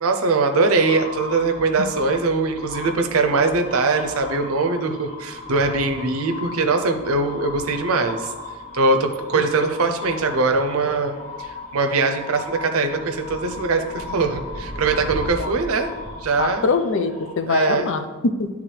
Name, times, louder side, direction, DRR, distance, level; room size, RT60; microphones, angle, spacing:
voice 1, 0.0-8.3 8.7-15.9 16.2-16.6 17.5-17.9, right 3 dB, 80° right, 6 dB, 0.6 m, -21 dB
sound 1, 0.7-17.8, left 2 dB, 75° left, 1.5 m, -36 dB
voice 2, 16.4-18.5, left 4 dB, 60° left, 9 dB, 0.4 m, -23 dB
9.3 x 3.5 x 3.2 m, 1.3 s
head